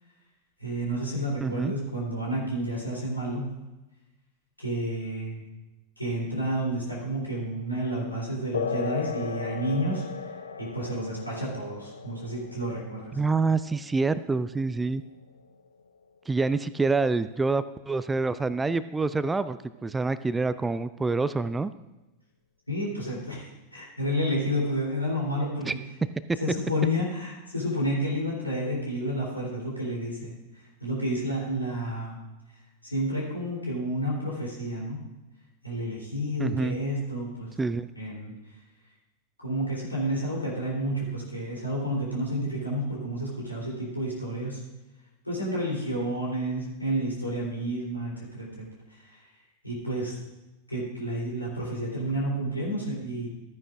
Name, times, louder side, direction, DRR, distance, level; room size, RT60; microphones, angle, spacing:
voice 1, 0.6-3.4 4.6-5.4 6.0-10.3 10.6-13.2 22.7-25.7 26.4-32.2 32.8-35.0 35.6-37.6 37.9-38.6 39.4-44.6 45.2-49.2 49.6-50.1 50.7-53.3, equal, 85° left, -4 dB, 3.5 m, -30 dB
voice 2, 1.4-1.7 13.1-15.0 16.3-21.7 25.7-25.8 36.4-36.8 37.6-37.9, right 3 dB, 10° right, 15 dB, 0.3 m, -27 dB
sound 1, 8.5-16.5, left 6 dB, 70° left, 0.5 m, -37 dB
14.0 x 9.6 x 2.5 m, 1.1 s
figure-of-eight pair, 90°, 0 cm